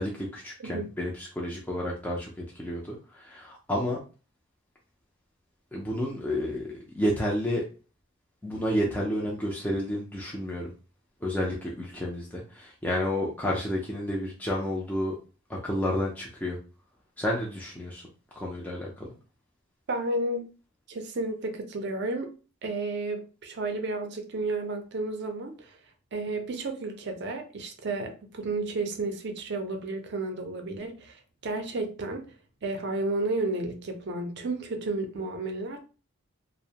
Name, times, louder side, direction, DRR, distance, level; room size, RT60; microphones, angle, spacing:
voice 1, 0.0-2.3 2.5-4.0 5.7-7.7 8.4-10.7 11.2-15.2 15.5-16.6 17.2-18.0 18.4-19.1, left 1 dB, 10° left, 0.3 m, -30 dB
voice 2, 19.9-20.5 20.9-22.3 22.6-25.8 26.1-32.3 32.6-35.8, right 2 dB, 50° right, 0.5 m, -32 dB
2.5 x 2.0 x 2.7 m
head